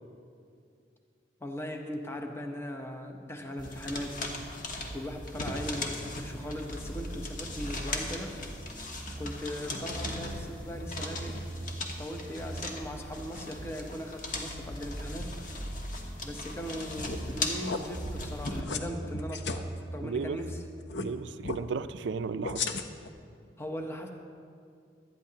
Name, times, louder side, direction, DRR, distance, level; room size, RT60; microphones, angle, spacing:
voice 1, 1.4-4.2 4.9-8.4 9.2-11.4 12.0-15.3 16.2-20.6 23.6-24.1, equal, 15° left, 3 dB, 0.8 m, -39 dB
sound 1, 3.6-18.6, left 2 dB, 50° left, 1.3 m, -39 dB
sound 2, 4.8-20.8, right 1 dB, 20° right, 1.2 m, -42 dB
sound 3, 17.0-17.3 17.6-17.8 18.4-18.8 19.1-19.6 20.9-21.1 21.4-21.6 22.4-23.1, left 4 dB, 70° left, 0.7 m, -34 dB
voice 2, 20.0-20.4 21.0-22.7, right 5 dB, 75° right, 13 dB, 0.4 m, -34 dB
17.5 x 12.0 x 2.8 m, 2.4 s
head